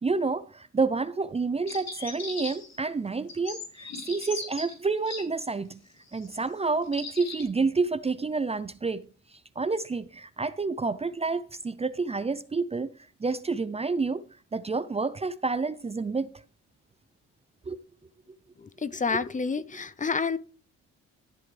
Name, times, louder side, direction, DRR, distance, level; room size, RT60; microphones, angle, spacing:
voice 1, 0.0-5.8 6.1-12.9 13.2-14.2 14.5-16.4 17.7-17.8 19.1-19.2, right 4 dB, 20° right, 0.5 m, -29 dB
sound 1, 1.7-2.8 3.3-5.2 6.1-6.3 6.8-7.4, left 3 dB, 60° left, 3.7 m, -38 dB
voice 2, 18.6-20.4, left 5 dB, 25° left, 0.7 m, -29 dB
13.0 x 7.7 x 3.4 m
cardioid pair, 90°, 30 cm